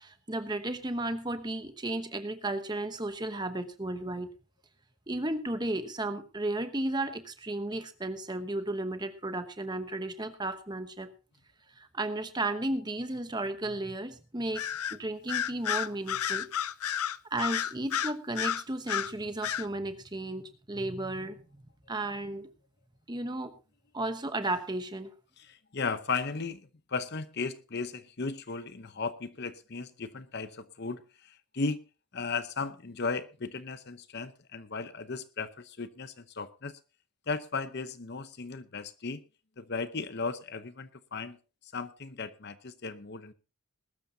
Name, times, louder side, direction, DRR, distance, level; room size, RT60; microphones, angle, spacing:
voice 1, 0.0-4.3 5.1-11.1 11.8-16.5 17.3-21.4 21.9-22.5 23.1-23.5 23.9-25.1, right 2 dB, 20° right, 9 dB, 1.0 m, -34 dB
Bird vocalization bird call bird song, 14.6-15.0 15.3-19.1 19.4-19.7, left 9 dB, 85° left, 0.6 m, -31 dB
voice 2, 25.4-31.8 32.1-36.7 37.3-39.2 39.6-41.4 41.7-43.3, left 4 dB, 50° left, 13 dB, 0.8 m, -36 dB
20.0 x 13.0 x 2.8 m, 0.32 s
head